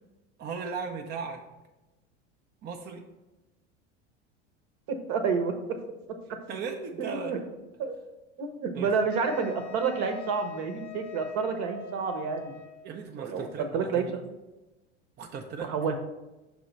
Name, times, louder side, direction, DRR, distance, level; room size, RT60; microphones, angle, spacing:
voice 1, 0.4-1.4 2.6-3.1 6.5-7.4 8.7-8.9 12.8-14.2 15.2-15.9, right 5 dB, 30° right, 3 dB, 0.6 m, -37 dB
voice 2, 4.9-5.8 7.0-7.4 7.8-8.0 8.4-12.5 13.2-14.0 15.6-15.9, right 5 dB, 55° right, 6 dB, 1.0 m, -29 dB
Wind instrument woodwind instrument, 9.1-13.0, left 5 dB, 35° left, 0.6 m, -44 dB
6.2 x 3.1 x 5.4 m, 1.0 s
hypercardioid pair, 80°, 35 cm